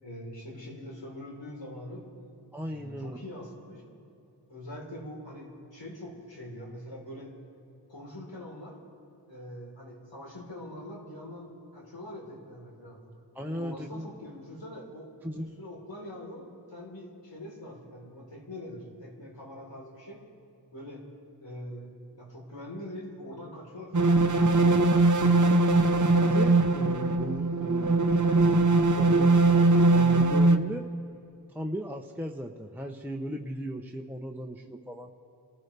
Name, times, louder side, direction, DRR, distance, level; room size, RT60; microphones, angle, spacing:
voice 1, 0.0-2.0 2.6-3.8 4.5-7.3 7.9-8.8 9.3-13.0 13.4-20.2 20.7-21.1 21.4-25.0, left 1 dB, 80° left, -3 dB, 4.1 m, -43 dB
voice 2, 2.5-3.2 13.3-14.1 15.2-15.5 26.0-29.5 29.9-30.9 31.5-35.1, equal, 5° right, 2 dB, 0.8 m, -37 dB
sound 1, 23.9-30.6, right 2 dB, 45° right, 0.9 m, -21 dB
28.5 x 15.0 x 3.4 m, 2.8 s
wide cardioid pair, 50°, 43 cm